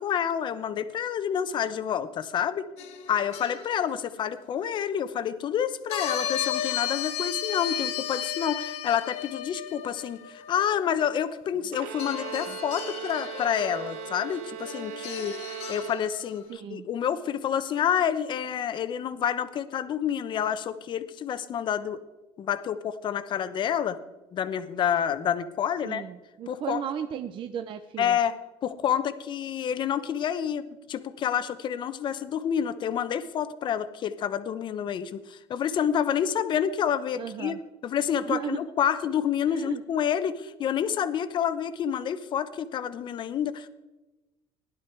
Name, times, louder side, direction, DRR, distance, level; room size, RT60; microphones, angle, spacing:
voice 1, 0.0-2.7 3.1-15.4 15.7-22.0 22.4-24.0 24.3-26.0 26.5-26.8 28.0-28.4 28.6-37.5 37.8-43.7, left 9 dB, 40° left, 12 dB, 0.9 m, -28 dB
sound 1, 2.8-3.9 5.9-11.7 12.0-16.4, left 9 dB, 60° left, 1.6 m, -35 dB
Bowed string instrument, 11.7-16.4, right 10 dB, 80° right, 0.9 m, -39 dB
voice 2, 16.5-16.9 25.8-28.2 37.2-37.6 38.2-38.6 39.5-39.8, right 8 dB, 40° right, 8 dB, 0.7 m, -35 dB
16.5 x 11.5 x 4.6 m, 1.1 s
cardioid pair, 135°, 12 cm